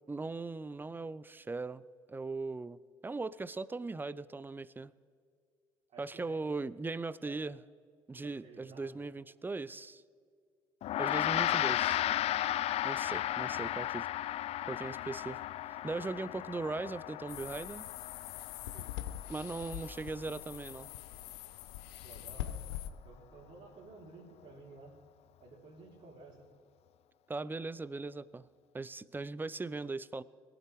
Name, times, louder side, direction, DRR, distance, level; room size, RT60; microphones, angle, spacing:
voice 1, 0.1-1.8 2.1-4.9 6.0-7.6 8.1-10.0 11.0-12.0 12.8-14.1 14.7-15.4 15.8-17.9 19.3-20.9 27.3-28.5 28.7-30.2, right 3 dB, 15° right, 19 dB, 0.5 m, -39 dB
voice 2, 5.9-6.5 7.2-7.4 8.2-9.1 12.4-12.6 15.9-16.1 18.7-19.0 22.0-22.7 23.0-25.0 25.4-26.5, right 3 dB, 55° right, -6 dB, 3.5 m, -54 dB
Gong, 10.8-20.3, left 13 dB, 50° left, 0.4 m, -35 dB
sound 1, 17.3-22.9, left 13 dB, 75° left, 0.7 m, -43 dB
22.0 x 7.8 x 4.7 m, 2.2 s
hypercardioid pair, 60°, 14 cm